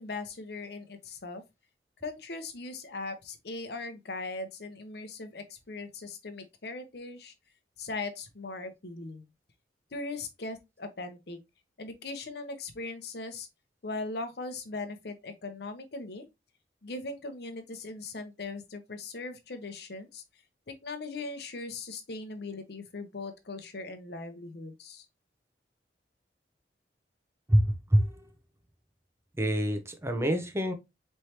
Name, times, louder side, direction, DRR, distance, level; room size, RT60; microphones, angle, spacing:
voice 1, 0.0-1.4 2.0-7.3 7.8-9.3 9.9-11.4 11.8-13.5 13.8-16.2 16.8-20.2 20.7-25.1, left 3 dB, 65° left, 0.8 m, -39 dB
voice 2, 29.4-30.7, equal, 15° right, 0.7 m, -25 dB
4.4 x 3.3 x 2.8 m
head